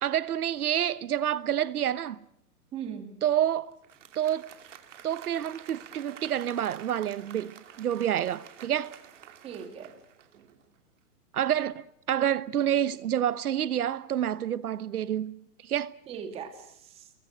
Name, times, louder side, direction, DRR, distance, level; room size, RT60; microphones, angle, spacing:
voice 1, 0.0-2.2 3.2-3.8 4.1-4.5 5.0-8.9 11.3-16.0, right 10 dB, 70° right, 1.1 m, -28 dB
voice 2, 2.7-3.2 9.4-9.9 16.1-17.1, right 7 dB, 10° right, 2.1 m, -39 dB
Applause, 3.7-10.7, right 9 dB, 50° right, 2.9 m, -49 dB
28.5 x 23.0 x 6.3 m
hypercardioid pair, 170°, 46 cm